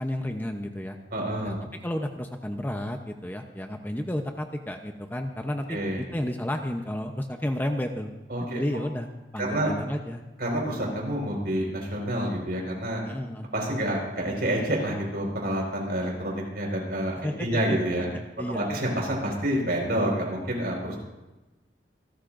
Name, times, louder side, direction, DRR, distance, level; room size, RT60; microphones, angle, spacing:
voice 1, 0.0-1.0 1.4-1.6 1.8-5.8 6.1-8.1 8.5-9.1 9.3-10.2 13.1-13.5 17.2-17.8 18.4-18.7, left 1 dB, 10° left, 4 dB, 0.8 m, -31 dB
voice 2, 1.1-1.6 5.7-6.0 8.3-8.8 9.4-9.7 10.4-13.0 13.5-18.1 18.5-21.0, right 1 dB, 60° right, -1 dB, 4.9 m, -28 dB
27.0 x 13.5 x 2.6 m, 1.1 s
head